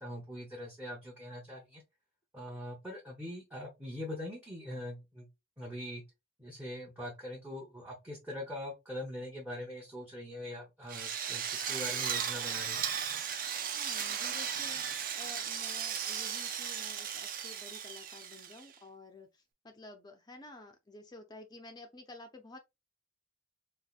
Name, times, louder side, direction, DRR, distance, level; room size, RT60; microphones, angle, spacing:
voice 1, 0.0-1.8 2.3-5.3 5.6-6.0 6.4-12.8, left 1 dB, 10° right, 0.7 m, -42 dB
Drill, 10.9-18.7, right 8 dB, 40° right, 0.4 m, -36 dB
voice 2, 13.7-22.6, left 2 dB, 20° left, 0.4 m, -51 dB
4.3 x 2.5 x 2.4 m
head